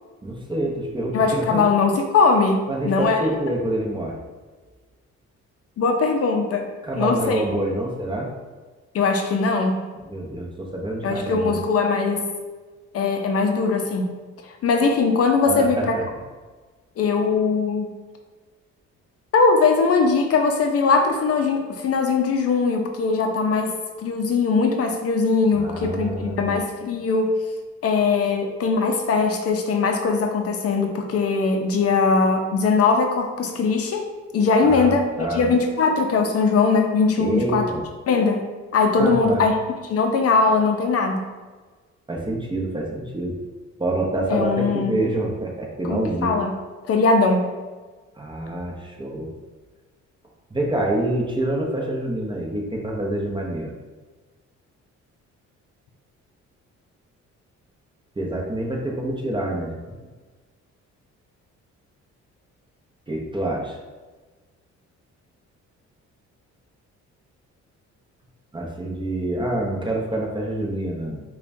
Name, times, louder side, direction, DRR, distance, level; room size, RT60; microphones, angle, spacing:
voice 1, 0.2-1.6 2.7-4.2 6.8-8.3 10.0-11.6 15.4-16.0 25.5-26.5 34.6-35.5 37.2-37.8 39.0-39.5 42.1-43.4 43.8-46.5 48.2-49.3 50.5-53.7 58.2-59.7 63.1-63.8 68.5-71.2, right 1 dB, 15° right, -1 dB, 0.7 m, -26 dB
voice 2, 1.1-3.2 5.8-7.4 8.9-9.8 11.0-12.3 12.9-14.2 14.6-15.9 17.0-18.0 19.3-23.7 24.0-27.4 27.8-34.1 34.3-37.7 38.1-38.4 38.7-39.5 39.9-41.2 44.3-45.0 45.8-46.5 46.9-47.5, left 4 dB, 50° left, 4 dB, 0.5 m, -20 dB
5.0 x 2.3 x 2.6 m, 1.3 s
cardioid pair, 90°, 30 cm